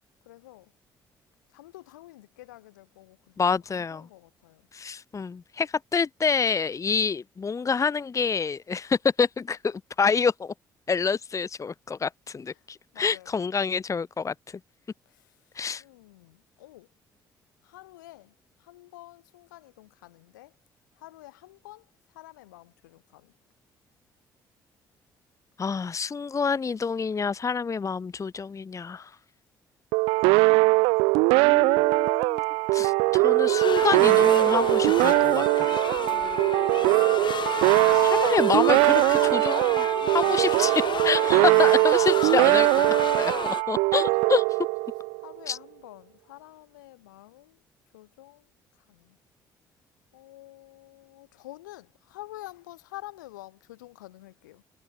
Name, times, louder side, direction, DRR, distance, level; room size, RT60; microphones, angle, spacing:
voice 1, 0.2-0.7 1.5-4.7 12.5-12.7 12.9-13.4 15.1-16.9 17.6-20.5 20.9-23.3 36.0-37.6 38.0-38.6 41.3-41.4 44.1-44.3 45.2-47.6 47.9-49.2 50.1-54.6, left 17 dB, 85° left, 3.9 m, -49 dB
voice 2, 3.4-4.1 4.7-10.5 10.9-14.3 15.6-15.8 25.6-29.1 31.4-32.4 32.7-35.8 37.9-44.4 45.5-45.6, left 5 dB, 30° left, 0.8 m, -27 dB
sound 1, 29.9-45.3, right 27 dB, 75° right, 0.4 m, -21 dB
sound 2, 33.4-43.6, left 8 dB, 50° left, 1.5 m, -32 dB
hypercardioid pair, 45°, 10 cm